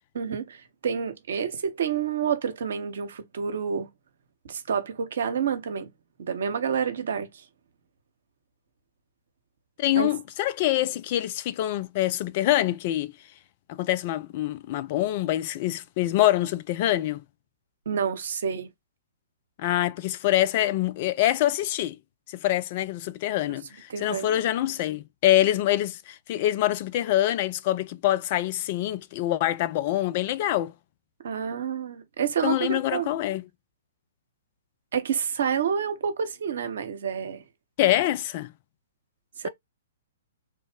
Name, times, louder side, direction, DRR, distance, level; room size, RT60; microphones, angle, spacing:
voice 1, 0.1-3.9 4.4-5.9 6.2-7.5 10.0-10.1 17.9-18.7 23.9-24.5 31.2-33.1 34.9-37.4 39.4-39.5, right 7 dB, 55° right, 0.7 m, -29 dB
voice 2, 9.8-13.1 13.7-17.2 19.6-22.0 22.3-30.7 32.4-33.4 37.8-38.5 39.4-39.5, left 14 dB, 40° left, 0.3 m, -25 dB
3.2 x 2.1 x 3.4 m
figure-of-eight pair, 115°, 0 cm